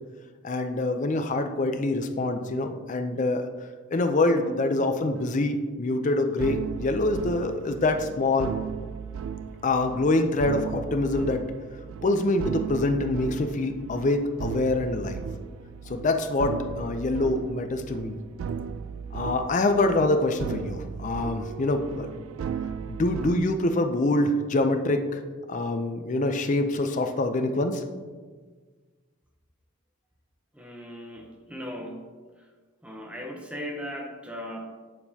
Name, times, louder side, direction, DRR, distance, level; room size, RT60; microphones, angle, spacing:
voice 1, 0.4-3.4 3.9-8.5 9.6-11.4 12.0-15.2 15.9-18.2 19.1-22.2 22.9-25.2 25.5-27.8, left 2 dB, 40° left, 7 dB, 0.5 m, -25 dB
sound 1, 4.4-4.8 5.1-5.5 6.4-23.4, right 7 dB, 85° right, 0.3 m, -36 dB
voice 2, 30.5-32.1 32.8-34.6, equal, 5° right, 1 dB, 0.7 m, -37 dB
7.5 x 6.9 x 2.8 m, 1.4 s
head